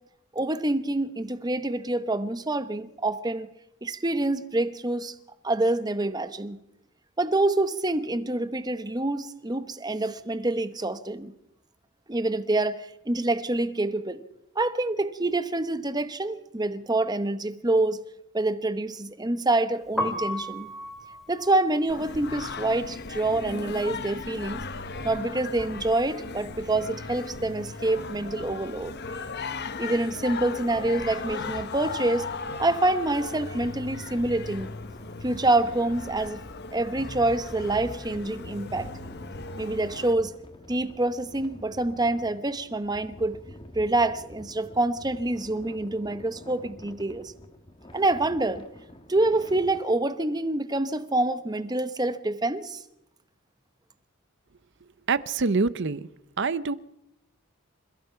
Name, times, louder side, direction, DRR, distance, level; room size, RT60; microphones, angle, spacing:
voice 1, 0.3-3.5 3.8-5.1 5.4-6.6 7.2-11.3 12.1-14.2 14.5-18.0 18.3-20.7 21.3-24.6 25.0-29.2 29.8-32.3 32.6-34.7 35.2-36.4 36.7-38.9 39.6-40.3 40.7-43.4 43.7-47.3 47.9-48.7 49.1-52.8, right 2 dB, 20° right, 12 dB, 1.0 m, -26 dB
Piano, 19.8-25.8 26.0-27.6 27.9-34.3, left 1 dB, ahead, 2.5 m, -38 dB
Singing, 21.9-40.1, left 4 dB, 50° left, 1.2 m, -37 dB
sound 1, 33.4-49.8, left 1 dB, 25° left, 1.7 m, -47 dB
voice 2, 55.1-56.0 56.4-56.7, right 4 dB, 55° right, 17 dB, 0.7 m, -25 dB
29.5 x 15.5 x 5.8 m, 0.82 s
head